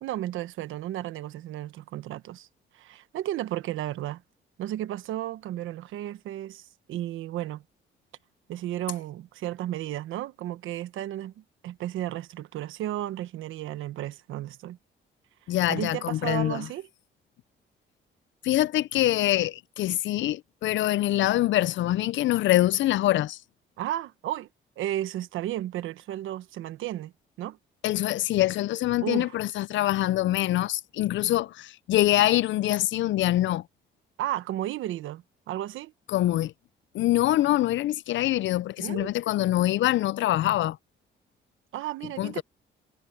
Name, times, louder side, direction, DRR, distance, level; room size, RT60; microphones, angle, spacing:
voice 1, 0.0-2.5 2.7-4.2 4.6-7.6 8.5-14.8 15.7-16.9 23.8-24.5 24.8-27.1 27.4-27.6 29.0-29.4 34.2-35.9 38.8-39.1 41.7-42.4, right 13 dB, 85° right, 1.2 m, -33 dB
voice 2, 15.5-16.7 18.4-23.4 27.8-33.6 36.1-36.5 36.9-40.8 42.2-42.4, left 14 dB, 70° left, 0.5 m, -24 dB
cardioid pair, 90°, 20 cm